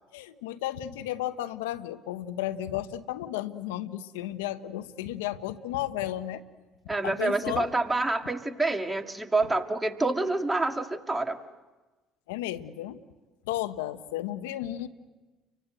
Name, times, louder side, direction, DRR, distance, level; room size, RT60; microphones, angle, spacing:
voice 1, 0.1-6.4 7.0-7.7 12.3-13.0 13.4-14.9, left 13 dB, 85° left, 11 dB, 1.1 m, -33 dB
voice 2, 6.9-11.4, right 2 dB, 15° right, 6 dB, 2.1 m, -27 dB
30.0 x 24.0 x 7.8 m, 1.2 s
hypercardioid pair, 70°, 0 cm